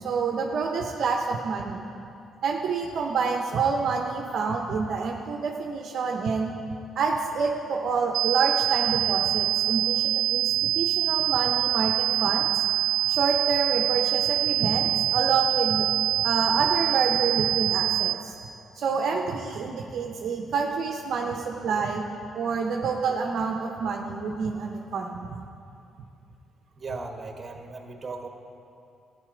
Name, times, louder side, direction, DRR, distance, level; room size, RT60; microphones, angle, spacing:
voice 1, 0.0-1.9 2.4-6.5 6.9-12.6 13.1-15.9 16.2-18.4 18.8-22.0 22.3-25.4, right 5 dB, 65° right, 1 dB, 0.8 m, -28 dB
sound 1, 8.1-18.1, right 15 dB, 85° right, 0.3 m, -25 dB
voice 2, 26.8-28.3, right 3 dB, 35° right, 4 dB, 1.4 m, -37 dB
13.0 x 9.3 x 5.1 m, 2.6 s
supercardioid pair, 70°, 0 cm